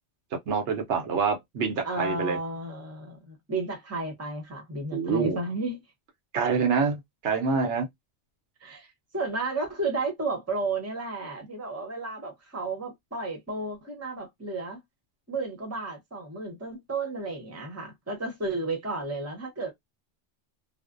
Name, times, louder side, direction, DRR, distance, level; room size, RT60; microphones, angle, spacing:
voice 1, 0.5-2.4 4.9-5.4 6.3-7.9, right 5 dB, 75° right, 0.9 m, -26 dB
voice 2, 1.8-5.8 8.6-14.8 15.3-19.7, right 3 dB, 15° right, 0.8 m, -33 dB
2.4 x 2.0 x 2.4 m
omnidirectional pair, 1.2 m